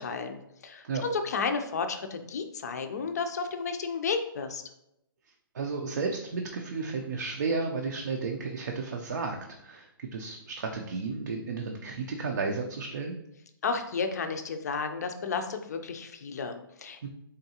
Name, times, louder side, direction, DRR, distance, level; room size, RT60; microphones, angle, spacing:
voice 1, 0.0-4.6 13.6-17.1, left 5 dB, 45° left, 7 dB, 0.4 m, -32 dB
voice 2, 5.5-13.2 17.0-17.1, right 4 dB, 55° right, 2 dB, 0.5 m, -33 dB
3.8 x 3.4 x 2.8 m, 0.82 s
hypercardioid pair, 175°, 12 cm